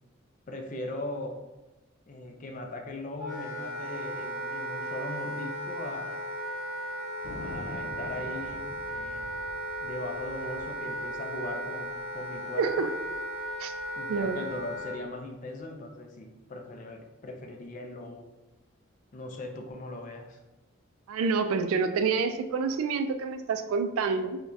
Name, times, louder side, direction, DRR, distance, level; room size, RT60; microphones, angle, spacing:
voice 1, 0.5-1.4 2.1-6.3 6.8-7.0 7.4-9.3 9.8-12.9 14.0-18.3 19.1-20.4, left 2 dB, 35° left, 3 dB, 0.4 m, -39 dB
Wind instrument woodwind instrument, 3.2-15.0, equal, ahead, 0.8 m, -36 dB
Thunder, 7.2-12.1 12.3-12.4 12.6-13.2 13.7-14.9, left 1 dB, 80° left, 0.7 m, -46 dB
voice 2, 12.6-12.9 13.6-13.7 14.1-14.4 21.1-24.4, right 5 dB, 85° right, 8 dB, 0.3 m, -27 dB
4.5 x 2.2 x 2.6 m, 1.0 s
head